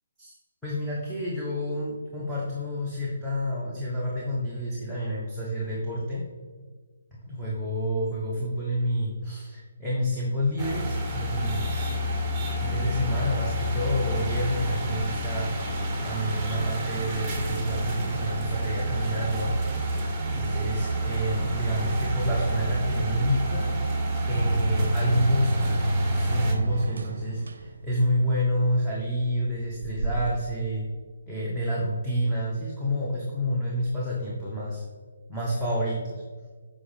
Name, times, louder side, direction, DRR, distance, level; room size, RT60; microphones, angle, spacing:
voice 1, 0.6-6.2 7.3-11.9 12.6-15.5 16.0-19.5 19.8-19.9 20.3-23.6 24.3-25.7 26.1-30.9 31.3-34.8 35.3-36.2, equal, ahead, -9 dB, 1.3 m, -29 dB
sound 1, 10.6-26.5, right 1 dB, 20° right, 1.0 m, -29 dB
sound 2, 24.3-30.6, right 1 dB, 65° right, 0.6 m, -29 dB
7.5 x 5.0 x 3.4 m, 1.5 s
figure-of-eight pair, 145°, 0 cm